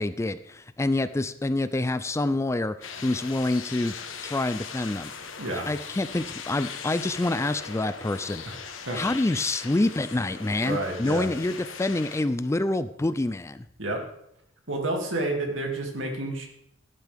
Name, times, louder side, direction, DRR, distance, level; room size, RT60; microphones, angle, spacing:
voice 1, 0.0-3.9 4.2-5.1 5.7-8.4 8.9-13.6, left 2 dB, 15° left, 13 dB, 0.4 m, -27 dB
sound 1, 2.8-12.2, left 6 dB, 75° left, 1.2 m, -40 dB
voice 2, 10.6-11.3 13.8-14.0 14.7-16.5, right 2 dB, 70° right, 1 dB, 2.5 m, -30 dB
13.0 x 12.0 x 3.5 m, 0.74 s
head